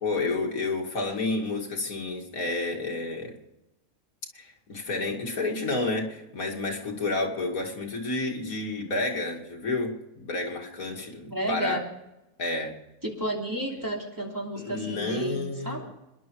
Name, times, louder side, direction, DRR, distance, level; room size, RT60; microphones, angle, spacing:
voice 1, 0.0-3.3 4.3-11.8 12.4-12.8 14.5-15.9, left 3 dB, 85° left, 1 dB, 2.7 m, -30 dB
voice 2, 11.2-11.8 13.0-15.8, right 1 dB, 15° right, -1 dB, 2.9 m, -32 dB
26.0 x 11.0 x 4.7 m, 0.98 s
omnidirectional pair, 1.4 m